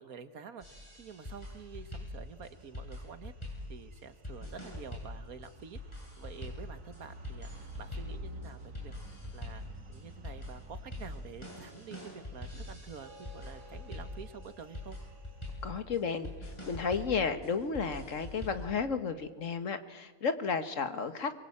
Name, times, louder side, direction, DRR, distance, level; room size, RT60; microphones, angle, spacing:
voice 1, 0.0-3.3 3.7-8.9 9.3-15.0, right 6 dB, 80° right, 11 dB, 1.8 m, -48 dB
sound 1, 0.6-18.7, left 1 dB, 20° left, 7.9 m, -44 dB
sound 2, 0.9-15.5, right 1 dB, 65° right, 2.2 m, -53 dB
sound 3, 13.0-18.5, left 2 dB, 35° left, 2.3 m, -59 dB
voice 2, 15.6-21.3, left 5 dB, 60° left, 10 dB, 1.8 m, -33 dB
23.5 x 22.0 x 8.7 m, 1.2 s
omnidirectional pair, 1.5 m